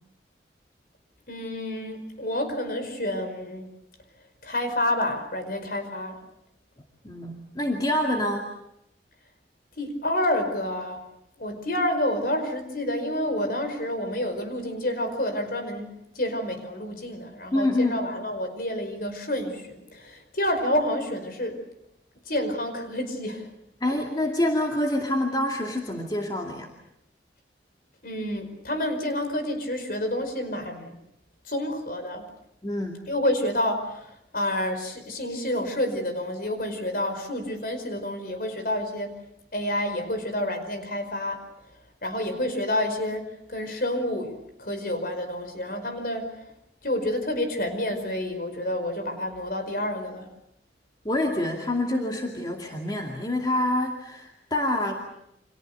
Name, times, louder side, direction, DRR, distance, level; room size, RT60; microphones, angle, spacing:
voice 1, 1.3-3.7 4.4-6.2 9.8-11.0 11.4-21.6 22.3-23.5 28.0-30.9 31.5-32.2 33.1-39.1 39.5-41.4 42.0-46.3 46.8-50.3, left 1 dB, 50° left, 7 dB, 5.1 m, -29 dB
voice 2, 7.0-8.5 17.5-18.1 23.8-26.7 32.6-33.0 51.0-55.0, left 1 dB, 20° left, 1 dB, 2.4 m, -26 dB
30.0 x 26.5 x 6.7 m, 0.80 s
head